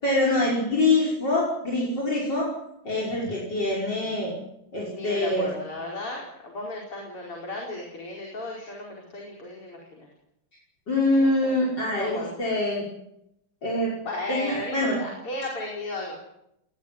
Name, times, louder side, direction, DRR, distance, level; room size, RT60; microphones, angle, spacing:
voice 1, 0.0-2.5 2.8-4.3 4.7-5.5 10.9-12.8 13.6-13.9 14.3-15.0, left 2 dB, 50° left, -3 dB, 6.6 m, -24 dB
voice 2, 4.9-10.1 11.2-11.5 11.8-12.4 14.0-16.2, left 2 dB, 85° left, -1 dB, 5.8 m, -35 dB
20.5 x 19.5 x 9.9 m, 0.81 s
omnidirectional pair, 2.4 m